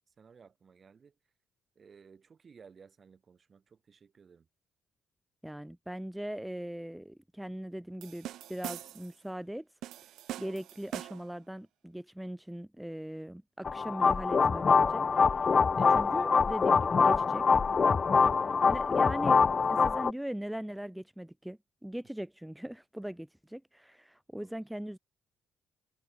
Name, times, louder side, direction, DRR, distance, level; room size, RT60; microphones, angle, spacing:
voice 1, 0.1-1.2 1.7-4.5 23.0-23.2 24.4-24.9, right 6 dB, 45° right, 4.6 m, -58 dB
voice 2, 5.4-9.7 10.4-17.4 18.2-25.0, right 1 dB, 5° right, 2.2 m, -40 dB
sound 1, 8.0-9.2 9.8-11.4, right 13 dB, 85° right, 0.8 m, -42 dB
sound 2, 13.6-20.1, left 5 dB, 40° left, 0.4 m, -24 dB
cardioid pair, 90°, 0 cm